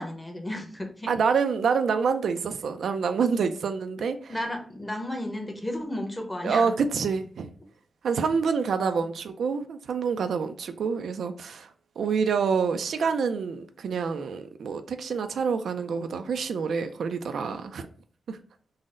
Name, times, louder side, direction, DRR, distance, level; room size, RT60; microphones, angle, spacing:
voice 1, 0.0-1.1 4.3-6.7 8.8-9.1 13.3-13.4, left 1 dB, 15° left, 0.9 m, -33 dB
voice 2, 1.1-4.4 6.4-7.5 8.0-11.7 12.0-17.9 18.3-18.4, right 5 dB, 90° right, 0.4 m, -27 dB
3.9 x 2.0 x 3.7 m
wide cardioid pair, 100°, 0 cm